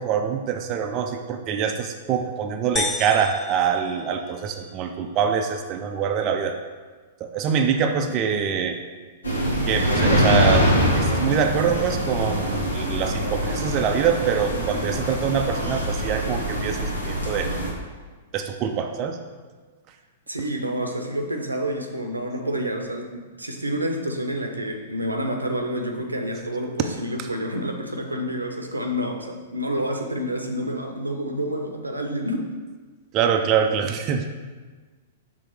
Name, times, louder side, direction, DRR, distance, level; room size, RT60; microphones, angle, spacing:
voice 1, 0.0-6.6 7.2-8.8 9.7-17.5 18.3-19.2 27.2-27.3 33.1-34.3, right 7 dB, 35° right, 4 dB, 0.5 m, -24 dB
sound 1, 2.8-4.7, left 4 dB, 20° left, 0.4 m, -32 dB
sound 2, 9.2-17.7, equal, 80° left, 1.4 m, -24 dB
voice 2, 20.3-32.5, equal, 85° right, 3 dB, 0.8 m, -28 dB
6.1 x 3.7 x 4.9 m, 1.4 s
figure-of-eight pair, 105°, 0 cm